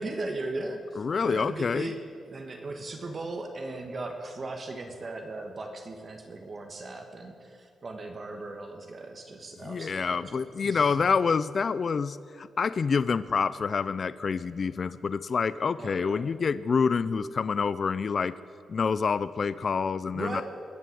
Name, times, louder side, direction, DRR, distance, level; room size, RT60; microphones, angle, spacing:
voice 1, 0.0-11.0 15.8-16.2 20.1-20.4, right 2 dB, 35° right, 4 dB, 1.3 m, -38 dB
voice 2, 1.0-1.9 9.6-18.3 18.7-20.4, left 5 dB, 40° left, 15 dB, 0.4 m, -27 dB
22.0 x 7.6 x 8.5 m, 2.4 s
cardioid pair, 130°, 0 cm